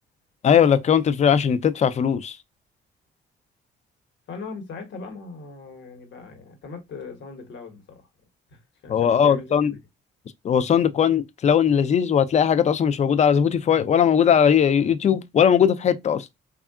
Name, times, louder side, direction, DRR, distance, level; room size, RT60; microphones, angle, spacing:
voice 1, 0.4-2.4 8.9-9.7 10.4-16.3, left 8 dB, 35° left, 0.4 m, -19 dB
voice 2, 4.3-8.1 8.5-9.6, left 4 dB, 70° left, 1.1 m, -39 dB
3.5 x 2.4 x 2.3 m
cardioid pair, 90°, 20 cm